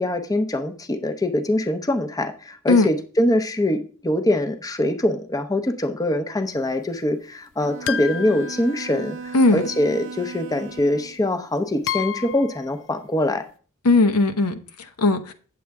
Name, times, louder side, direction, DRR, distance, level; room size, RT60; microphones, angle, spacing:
voice 1, 0.0-13.4, left 1 dB, 15° left, 0.6 m, -23 dB
Bowed string instrument, 7.6-11.2, right 5 dB, 60° right, 0.5 m, -37 dB
sound 1, 7.9-9.4 10.8-10.9 11.9-12.7, left 9 dB, 60° left, 0.3 m, -31 dB
voice 2, 13.8-15.3, left 3 dB, 80° left, 0.8 m, -18 dB
8.5 x 7.5 x 3.5 m
head